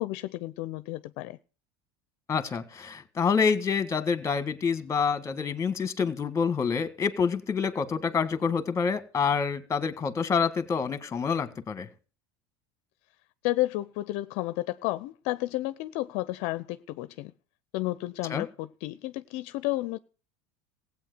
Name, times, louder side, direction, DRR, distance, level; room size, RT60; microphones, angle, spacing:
voice 1, 0.0-1.4 13.4-17.3 17.7-20.0, left 18 dB, 65° left, 0.7 m, -31 dB
voice 2, 2.3-11.9 18.3-18.4, left 6 dB, 25° left, 1.6 m, -27 dB
16.0 x 8.5 x 6.7 m
supercardioid pair, 115°, 13 cm